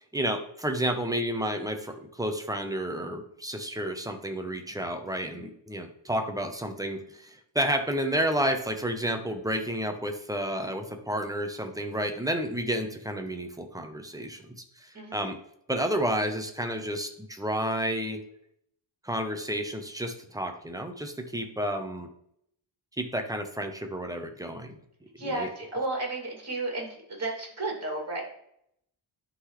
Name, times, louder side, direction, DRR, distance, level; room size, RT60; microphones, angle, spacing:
voice 1, 0.0-15.4 15.7-18.2 19.0-22.1 23.0-24.8 25.2-25.5, equal, 5° right, 5 dB, 0.7 m, -31 dB
voice 2, 14.9-15.3 25.2-28.2, right 2 dB, 30° right, -1 dB, 2.6 m, -33 dB
11.5 x 3.9 x 3.2 m, 0.72 s
wide cardioid pair, 145°, 49 cm